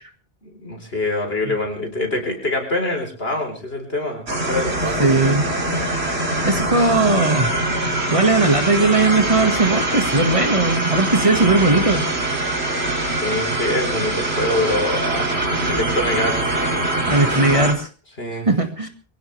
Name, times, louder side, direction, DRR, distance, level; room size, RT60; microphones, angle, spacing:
voice 1, 0.4-5.4 6.7-6.8 13.1-16.5 18.2-18.5, left 1 dB, 70° left, 3 dB, 4.5 m, -25 dB
sound 1, 4.3-17.7, right 2 dB, 85° right, 3.3 m, -23 dB
voice 2, 5.0-5.5 6.4-7.8 8.1-12.0 17.1-17.9 18.5-18.9, right 3 dB, 30° right, 5 dB, 2.0 m, -18 dB
23.0 x 16.5 x 3.4 m, 0.38 s
omnidirectional pair, 1.1 m